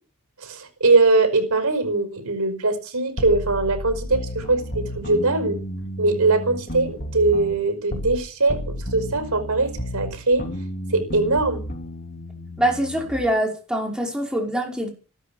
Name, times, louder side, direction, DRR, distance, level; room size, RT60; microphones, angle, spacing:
voice 1, 0.4-5.6 6.0-10.5 10.9-11.6, right 3 dB, 70° right, 5.3 m, -21 dB
sound 1, 3.2-8.2 8.5-13.3, equal, 45° left, 3.3 m, -32 dB
voice 2, 12.6-14.9, right 1 dB, 5° right, 5.4 m, -24 dB
15.0 x 13.0 x 7.3 m
head